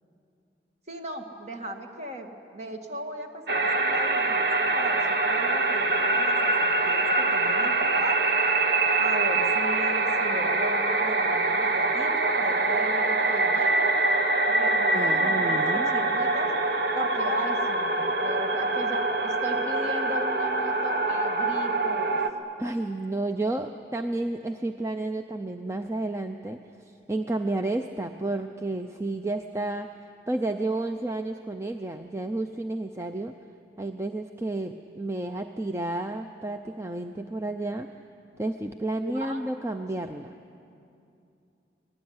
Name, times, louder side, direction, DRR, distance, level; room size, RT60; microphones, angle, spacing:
voice 1, 0.9-8.2 9.0-14.0 14.5-16.5 16.9-22.2 39.0-39.4, equal, 35° right, 3 dB, 2.1 m, -37 dB
sound 1, 3.5-22.3, right 2 dB, 55° right, 1.3 m, -24 dB
voice 2, 14.9-15.9 22.6-26.6 27.1-30.0 30.3-33.4 33.8-37.9 38.4-40.3, right 2 dB, 15° right, 6 dB, 0.6 m, -31 dB
25.5 x 19.5 x 9.6 m, 2.6 s
head